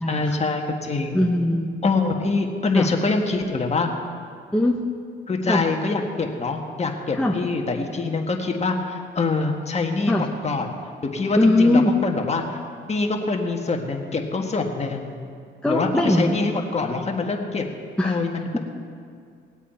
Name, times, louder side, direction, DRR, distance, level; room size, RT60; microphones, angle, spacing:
voice 1, 0.1-1.2 1.8-3.9 5.3-10.7 11.0-12.6 12.9-15.2 15.6-17.6 18.0-18.6, left 3 dB, 35° left, 2 dB, 1.5 m, -25 dB
voice 2, 1.1-1.7 2.7-2.9 4.5-4.8 5.5-5.6 7.1-7.3 10.1-10.2 11.4-11.9 15.6-16.4 18.0-18.2, left 1 dB, 5° left, -1 dB, 1.0 m, -20 dB
20.0 x 8.2 x 4.5 m, 2.2 s
cardioid pair, 90°, 20 cm